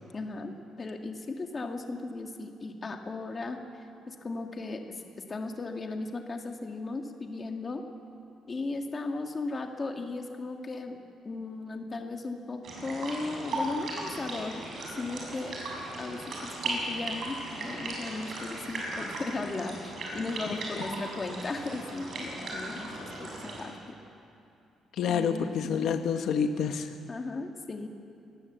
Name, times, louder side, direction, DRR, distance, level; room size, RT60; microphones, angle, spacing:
voice 1, 0.1-0.5 0.8-3.6 4.1-7.8 8.5-11.0 11.3-14.6 15.0-15.6 16.0-24.0 25.0-25.9 27.1-27.9, left 3 dB, 25° left, 4 dB, 1.7 m, -36 dB
sound 1, 12.6-23.6, right 2 dB, 45° right, 6.8 m, -37 dB
voice 2, 24.9-27.0, left 7 dB, 65° left, 6 dB, 1.0 m, -29 dB
22.5 x 20.0 x 8.1 m, 2.7 s
cardioid pair, 165°, 0 cm